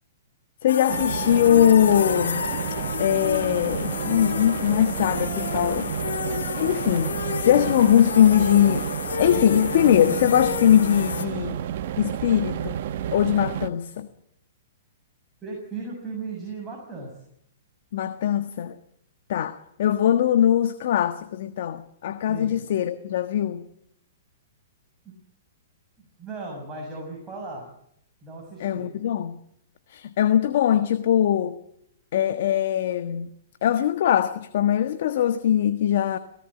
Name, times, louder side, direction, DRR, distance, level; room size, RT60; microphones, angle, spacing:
voice 1, 0.6-2.5 3.0-5.9 6.6-8.9 9.2-11.6 12.0-12.8 13.1-14.1 17.9-18.8 19.3-23.6 28.6-29.4 29.9-31.6 32.1-33.3 33.6-36.2, left 10 dB, 60° left, 1.4 m, -21 dB
sound 1, 0.7-11.3, left 6 dB, 80° left, 2.0 m, -31 dB
sound 2, 0.9-13.7, right 10 dB, 55° right, 1.0 m, -31 dB
voice 2, 15.4-17.1 22.3-22.6 25.0-25.2 26.2-27.7 28.2-28.9, right 3 dB, 15° right, 7.1 m, -36 dB
18.5 x 17.5 x 8.8 m
hypercardioid pair, 130°, 0 cm